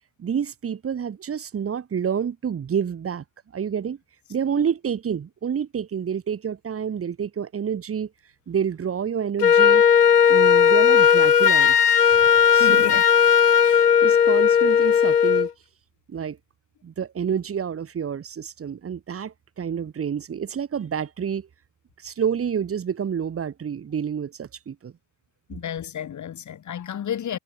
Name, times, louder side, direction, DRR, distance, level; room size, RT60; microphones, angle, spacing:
voice 1, 0.2-3.2 3.5-4.0 4.3-8.1 8.5-9.8 10.3-12.1 12.5-12.8 13.6-15.5 16.1-16.4 16.8-21.5 22.0-24.9, right 7 dB, 30° right, 3.2 m, -28 dB
Wind instrument woodwind instrument, 9.4-15.5, left 8 dB, 85° left, 1.7 m, -16 dB
voice 2, 12.5-13.0 25.5-27.4, left 9 dB, 40° left, 6.8 m, -31 dB
figure-of-eight pair, 65°, 46 cm